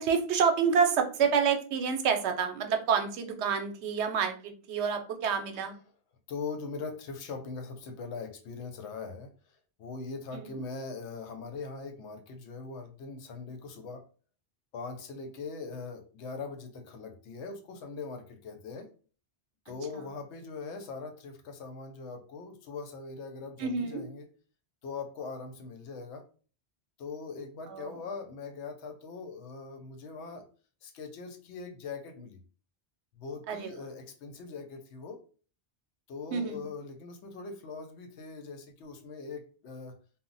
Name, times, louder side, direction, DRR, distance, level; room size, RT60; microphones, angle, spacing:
voice 1, 0.0-5.7 10.3-10.6 19.9-20.0 23.6-24.0 27.7-28.0 33.5-33.7 36.3-36.7, right 6 dB, 80° right, 6 dB, 0.9 m, -28 dB
voice 2, 6.3-9.3 9.8-14.0 14.7-18.9 19.7-24.3 24.8-26.2 27.0-30.4 30.8-32.4 33.1-35.2 36.1-40.0, left 4 dB, 85° left, 6 dB, 0.9 m, -41 dB
2.1 x 2.1 x 3.8 m, 0.39 s
omnidirectional pair, 1.1 m